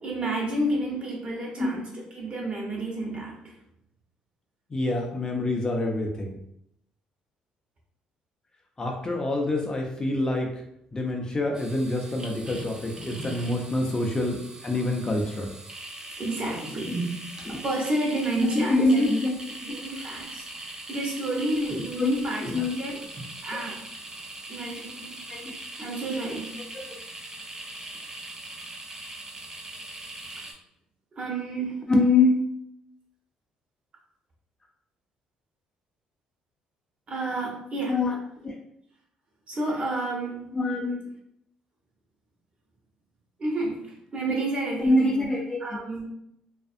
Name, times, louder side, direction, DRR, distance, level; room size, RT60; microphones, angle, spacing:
voice 1, 0.0-3.5 13.9-14.0 16.2-17.1 17.5-19.1 19.6-20.4 20.9-23.0 23.4-23.8 24.5-25.2 25.8-26.6 31.2-31.9 37.1-38.0 39.5-40.4 43.4-45.3 45.6-46.0, right 1 dB, 45° right, -2 dB, 1.0 m, -30 dB
voice 2, 4.7-6.3 8.8-10.6 10.9-15.5 17.5-17.6 18.4-19.4 22.0-22.2 22.4-22.8 25.3-25.5 31.9-32.5 37.9-38.2 38.4-38.5 40.5-41.0 44.8-45.8, left 2 dB, 25° left, 1 dB, 0.5 m, -25 dB
sound 1, 11.5-30.5, right 2 dB, 25° right, 0.6 m, -41 dB
2.5 x 2.3 x 2.4 m, 0.73 s
supercardioid pair, 75°, 3 cm